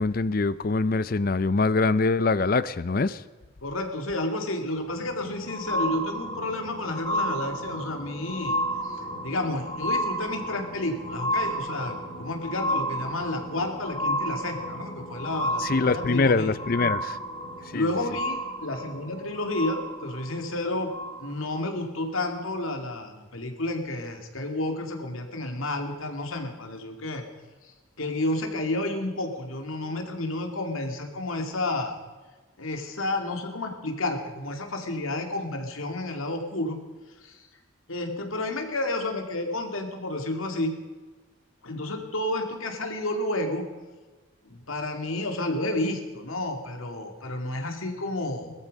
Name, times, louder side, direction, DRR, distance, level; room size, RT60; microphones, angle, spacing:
voice 1, 0.0-3.2 15.6-17.2 17.7-17.9, left 3 dB, 45° left, 17 dB, 0.5 m, -24 dB
voice 2, 3.6-8.6 8.9-16.5 17.7-20.9 21.2-27.2 28.0-31.9 32.6-36.8 37.2-37.4 37.9-40.8 41.6-43.7 44.5-48.5, left 2 dB, 90° left, 4 dB, 2.5 m, -31 dB
sound 1, 4.8-21.6 22.4-22.5, equal, 25° left, 3.3 m, -32 dB
19.5 x 14.0 x 5.3 m, 1.3 s
head